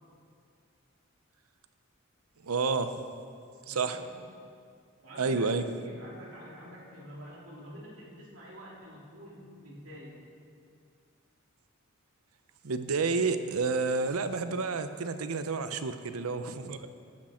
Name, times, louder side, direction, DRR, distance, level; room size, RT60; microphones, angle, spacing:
voice 1, 2.4-3.0 3.7-4.0 5.2-5.6 12.6-16.9, right 4 dB, 85° right, 10 dB, 0.7 m, -30 dB
voice 2, 3.6-4.1 5.0-5.5 5.7-10.2, equal, 65° right, -5 dB, 2.9 m, -47 dB
13.5 x 8.8 x 4.3 m, 2.3 s
head